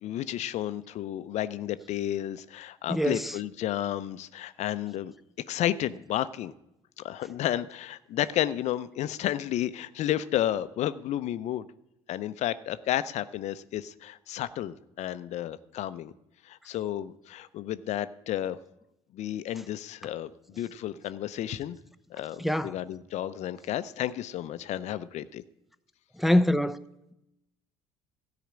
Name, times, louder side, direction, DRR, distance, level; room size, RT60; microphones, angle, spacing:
voice 1, 0.0-5.1 5.5-6.5 7.0-11.6 12.1-16.1 16.5-18.6 19.1-21.8 22.1-25.2, left 12 dB, 55° left, 0.5 m, -32 dB
voice 2, 2.9-3.3 22.4-22.7 26.2-26.8, left 1 dB, ahead, 0.5 m, -24 dB
13.0 x 4.9 x 8.8 m
hypercardioid pair, 60°, 14 cm